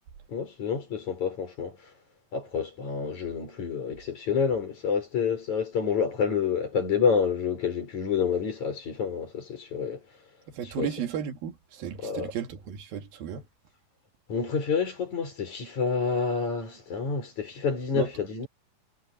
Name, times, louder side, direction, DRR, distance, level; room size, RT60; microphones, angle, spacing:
voice 1, 0.3-1.8 2.3-10.0 10.6-10.9 12.0-12.3 14.3-18.5, left 6 dB, 55° left, 7.1 m, -28 dB
voice 2, 10.5-13.4 18.0-18.1, right 9 dB, 90° right, 4.0 m, -34 dB
omnidirectional pair, 4.1 m